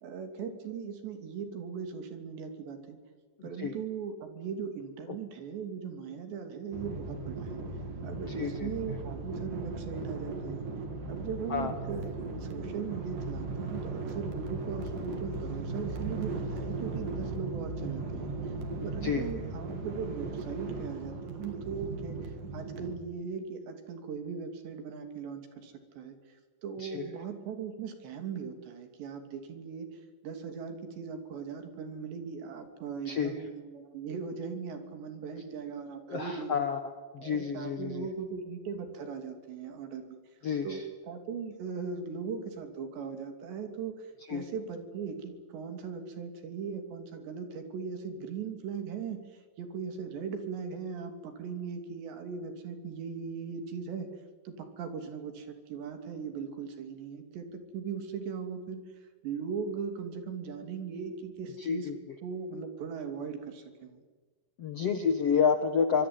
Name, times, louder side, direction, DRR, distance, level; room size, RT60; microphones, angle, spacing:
voice 1, 0.0-3.0 3.4-7.6 8.0-10.7 11.1-18.3 18.8-26.2 26.6-36.7 37.2-40.2 40.6-54.1 54.5-58.8 59.2-61.9 62.2-64.0, right 6 dB, 80° right, 7 dB, 5.2 m, -39 dB
sound 1, 6.7-23.0, right 3 dB, 55° right, 4.4 m, -37 dB
voice 2, 8.4-8.7 11.5-11.7 19.0-19.2 26.8-27.1 33.1-33.3 36.1-38.1 40.4-40.8 44.3-44.4 61.6-61.9 64.6-66.1, left 6 dB, 65° left, 7 dB, 1.5 m, -29 dB
25.5 x 22.0 x 9.7 m, 1.4 s
omnidirectional pair, 4.9 m